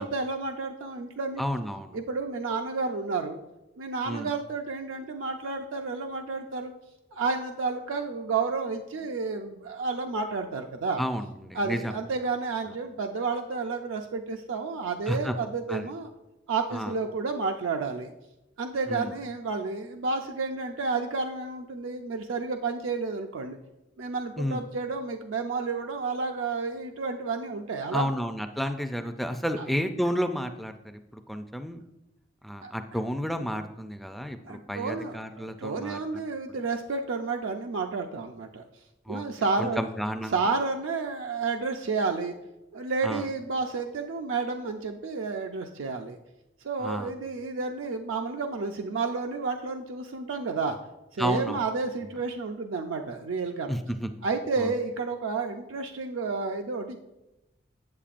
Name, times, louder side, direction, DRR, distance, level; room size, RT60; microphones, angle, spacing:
voice 1, 0.0-1.4 1.9-3.4 3.8-6.7 7.1-11.0 11.5-16.1 16.5-18.1 18.6-23.6 24.0-28.1 29.6-29.7 32.6-32.7 34.5-38.6 39.1-39.8 40.3-42.3 42.7-46.2 46.6-50.8 51.1-53.7 54.2-57.0, right 4 dB, 85° right, 4 dB, 0.5 m, -31 dB
voice 2, 1.4-2.0 4.1-4.3 11.0-12.0 15.1-15.3 15.7-15.9 16.7-16.9 18.9-19.1 24.4-24.6 27.9-31.8 32.4-36.0 39.1-39.2 39.6-40.4 43.0-43.3 46.8-47.1 51.2-51.6 53.7-54.1 54.6-54.7, equal, ahead, 7 dB, 0.3 m, -31 dB
8.5 x 7.5 x 2.5 m, 0.96 s
head